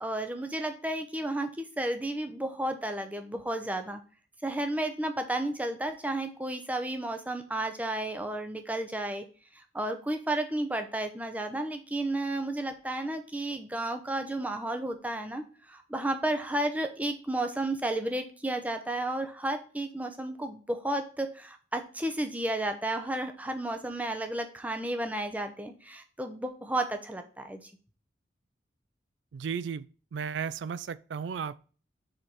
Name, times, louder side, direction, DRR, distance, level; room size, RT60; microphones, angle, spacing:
voice 1, 0.0-4.0 4.4-9.2 9.5-27.7, right 1 dB, 10° right, 0.6 m, -32 dB
voice 2, 29.3-29.9 30.1-31.7, right 6 dB, 70° right, 0.3 m, -34 dB
5.0 x 4.2 x 4.5 m
head